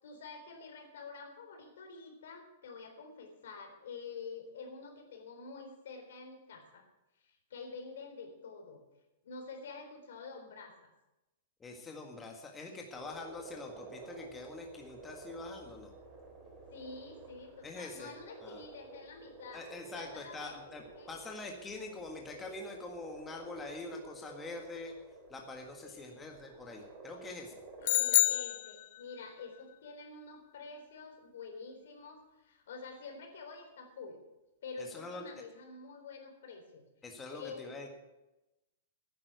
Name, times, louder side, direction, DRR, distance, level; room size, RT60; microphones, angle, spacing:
voice 1, 0.0-6.9 7.2-8.8 9.2-10.9 16.7-19.7 19.9-20.6 21.0-21.1 25.8-26.3 27.8-34.2 34.6-36.8 37.3-37.8, left 4 dB, 75° left, 4 dB, 3.9 m, -48 dB
voice 2, 11.6-15.9 17.6-18.1 18.4-18.6 19.5-24.9 25.3-27.6 34.8-35.3 37.0-37.9, left 2 dB, 15° left, 1 dB, 1.7 m, -45 dB
sound 1, 12.9-28.4, right 2 dB, 25° right, 3.9 m, -52 dB
sound 2, 27.8-29.3, left 17 dB, 55° left, 0.4 m, -28 dB
11.5 x 9.7 x 8.1 m, 0.98 s
hypercardioid pair, 145°, 0 cm